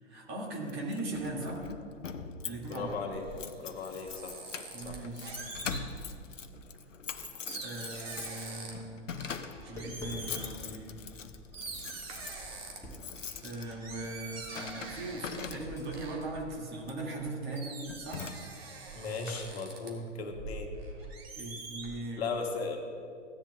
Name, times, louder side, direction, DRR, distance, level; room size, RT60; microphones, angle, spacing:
voice 1, 0.0-1.7 2.4-3.0 4.7-5.4 7.5-9.1 9.7-11.0 13.4-18.3 21.4-22.2, right 2 dB, 25° right, -2 dB, 2.1 m, -39 dB
Keys jangling, 0.7-16.0 16.8-17.1 17.5-17.6 17.9-18.8, left 6 dB, 75° left, 0.7 m, -43 dB
sound 1, 2.4-6.2 6.7-8.9 9.2-10.5 11.2-11.3 11.5-12.8 13.2-17.2 17.6-19.9 20.3-22.0, right 3 dB, 50° right, 1.9 m, -45 dB
voice 2, 2.7-3.2 3.6-4.4 4.8-5.0 18.9-20.7 22.2-22.8, left 4 dB, 55° left, 3 dB, 1.3 m, -36 dB
Tap, 9.3-16.0, equal, 5° left, 1.9 m, -49 dB
16.0 x 10.0 x 2.3 m, 2.4 s
figure-of-eight pair, 110°, 37 cm